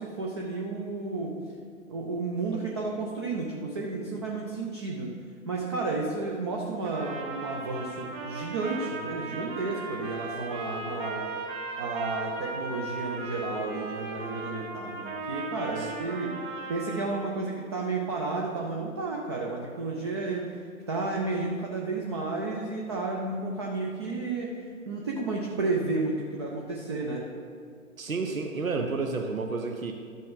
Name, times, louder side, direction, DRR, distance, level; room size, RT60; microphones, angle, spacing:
voice 1, 0.0-1.4 1.9-5.1 5.5-11.2 11.7-16.4 16.7-20.5 20.9-24.5 24.9-27.2, right 3 dB, 20° right, -1 dB, 0.4 m, -32 dB
Trumpet, 6.8-17.3, right 3 dB, 40° right, 1.9 m, -37 dB
voice 2, 28.0-29.9, right 4 dB, 85° right, 3 dB, 0.8 m, -30 dB
12.5 x 5.2 x 3.8 m, 2.1 s
figure-of-eight pair, 120°, 41 cm